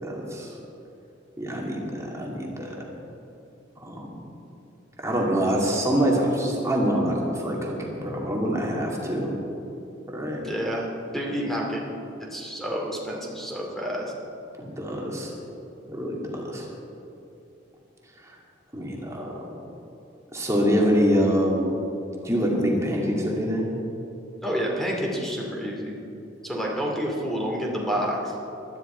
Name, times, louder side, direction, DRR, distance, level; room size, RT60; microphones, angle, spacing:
voice 1, 0.0-0.6 1.4-2.8 3.8-4.2 5.0-9.3 10.1-10.4 14.6-15.3 15.9-16.7 18.2-18.4 18.7-19.6 20.3-21.7 22.2-23.7, equal, 15° right, -2 dB, 2.5 m, -25 dB
voice 2, 10.4-11.8 12.3-14.1 24.4-26.0 26.4-28.3, equal, ahead, -2 dB, 2.6 m, -29 dB
19.0 x 13.0 x 4.5 m, 2.8 s
head